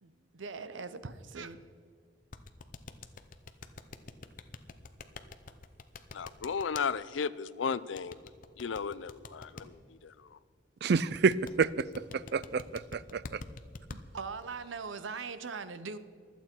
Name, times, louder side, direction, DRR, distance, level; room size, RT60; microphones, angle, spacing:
voice 1, 0.0-1.6 14.1-16.0, right 4 dB, 85° right, 12 dB, 0.8 m, -41 dB
sound 1, 2.3-6.9 8.0-9.6 11.1-14.0, left 4 dB, 45° left, 0.7 m, -45 dB
voice 2, 6.1-8.2 8.6-10.1, left 6 dB, 80° left, 17 dB, 0.5 m, -35 dB
voice 3, 10.8-13.4, right 5 dB, 60° right, 19 dB, 0.4 m, -29 dB
23.5 x 8.5 x 4.5 m, 2.2 s
head